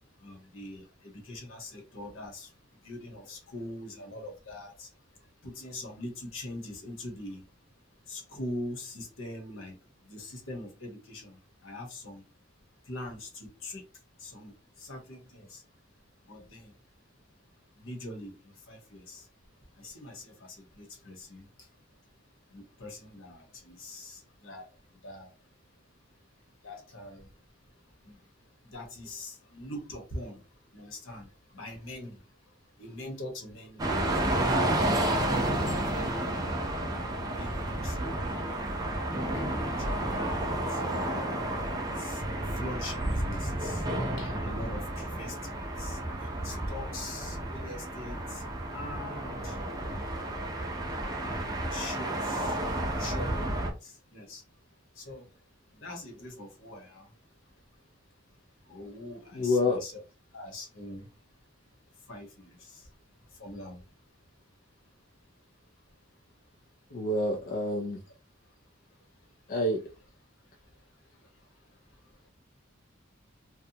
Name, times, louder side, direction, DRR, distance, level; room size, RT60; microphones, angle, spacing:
voice 1, 0.2-2.5 2.8-4.9 5.4-7.4 8.1-9.8 10.0-12.2 12.9-13.8 14.2-15.6 16.3-16.7 17.8-19.3 19.8-21.5 22.5-24.7 25.0-25.3 26.6-27.3 28.0-28.2 28.6-30.4 30.7-32.2 32.8-34.4 35.1-36.4 37.4-38.1 38.5-38.6 39.3-40.8 41.1-41.2 41.7-42.2 42.6-43.8 44.2-48.4 48.7-49.6 51.2-52.6 53.0-54.4 55.0-55.3 55.7-57.1 58.7-60.0 60.3-61.1 62.1-62.8 63.4-63.8, left 1 dB, 70° left, 1.0 m, -43 dB
sound 1, 33.8-53.7, right 1 dB, 20° right, 0.5 m, -31 dB
voice 2, 59.4-59.8 66.9-68.0 69.5-69.8, left 2 dB, 45° left, 0.4 m, -27 dB
2.7 x 2.1 x 2.7 m
head